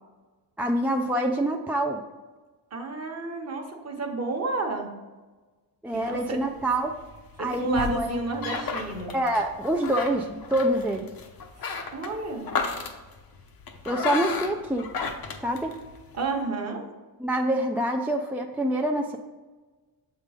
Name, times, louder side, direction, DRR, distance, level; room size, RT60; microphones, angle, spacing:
voice 1, 0.6-2.0 5.8-6.9 7.4-8.2 9.1-11.1 13.9-14.9 15.4-15.8 17.2-19.2, right 1 dB, 5° right, 2 dB, 0.3 m, -26 dB
voice 2, 2.7-4.9 5.9-6.4 7.6-9.2 11.9-12.5 16.1-16.9, right 3 dB, 35° right, 3 dB, 1.0 m, -31 dB
sound 1, 5.9-16.2, left 5 dB, 55° left, 0.8 m, -35 dB
7.1 x 3.7 x 4.9 m, 1.3 s
cardioid pair, 115°, 43 cm